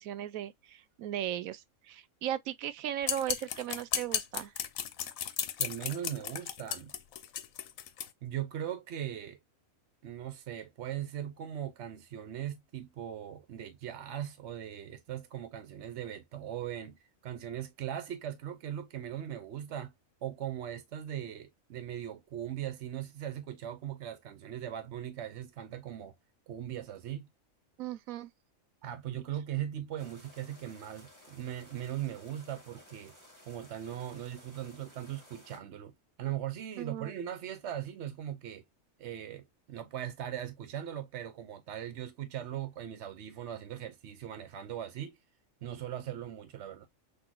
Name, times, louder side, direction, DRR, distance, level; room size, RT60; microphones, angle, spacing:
voice 1, 0.0-4.5 27.8-28.3 36.8-37.1, right 11 dB, 90° right, 1.0 m, -37 dB
sound 1, 3.0-8.1, left 9 dB, 80° left, 1.1 m, -35 dB
voice 2, 5.6-6.9 8.2-9.4 10.0-19.9 20.2-26.1 26.5-27.3 28.8-33.1 33.5-38.6 39.0-45.2 45.6-46.9, right 10 dB, 60° right, 0.9 m, -39 dB
sound 2, 30.0-35.6, left 1 dB, 15° right, 1.4 m, -56 dB
6.1 x 2.6 x 2.9 m
omnidirectional pair, 1.4 m